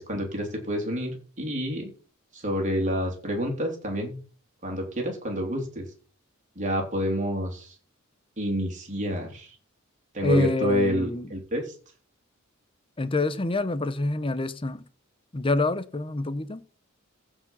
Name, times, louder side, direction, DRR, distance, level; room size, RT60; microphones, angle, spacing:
voice 1, 0.0-1.9 2.3-4.2 4.6-5.9 6.5-7.7 8.4-9.5 10.1-11.7, equal, 35° right, 3.2 m, -28 dB
voice 2, 10.2-11.3 13.0-14.8 15.3-16.6, left 2 dB, 25° left, 0.7 m, -26 dB
15.0 x 4.9 x 5.5 m
head